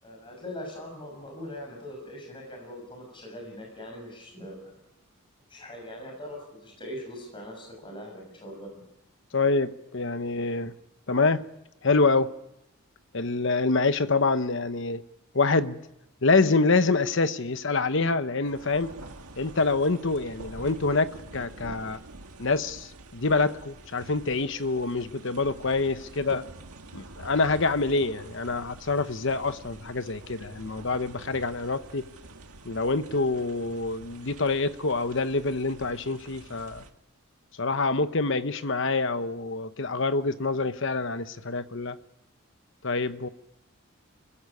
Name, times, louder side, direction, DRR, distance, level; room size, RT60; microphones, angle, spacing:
voice 1, 0.0-4.7 5.5-8.8, left 1 dB, 25° left, 6.1 m, -41 dB
voice 2, 9.3-10.7 11.1-11.4 11.8-12.3 13.1-15.0 15.3-15.8 16.2-18.9 19.4-22.0 22.4-26.5 26.9-32.1 32.6-36.8 37.6-42.0 42.8-43.3, left 3 dB, 55° left, 1.0 m, -26 dB
sound 1, 18.4-36.9, right 2 dB, 90° right, 1.8 m, -47 dB
25.5 x 16.0 x 9.8 m
head